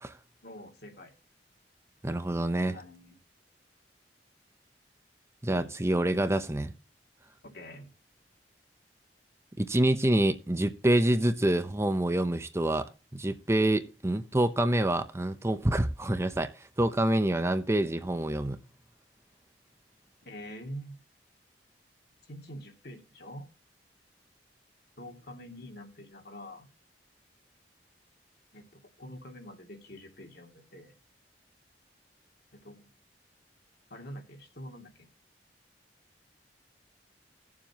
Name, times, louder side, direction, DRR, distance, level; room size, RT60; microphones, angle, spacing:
voice 1, 0.4-1.1 2.6-3.2 5.5-5.7 7.4-7.9 20.2-21.0 22.3-23.5 25.0-26.7 28.5-31.0 32.5-32.9 33.9-35.1, equal, 65° left, 2.6 m, -45 dB
voice 2, 2.0-2.8 5.4-6.7 9.6-18.6, right 1 dB, 15° right, 0.8 m, -27 dB
18.0 x 7.3 x 3.0 m
head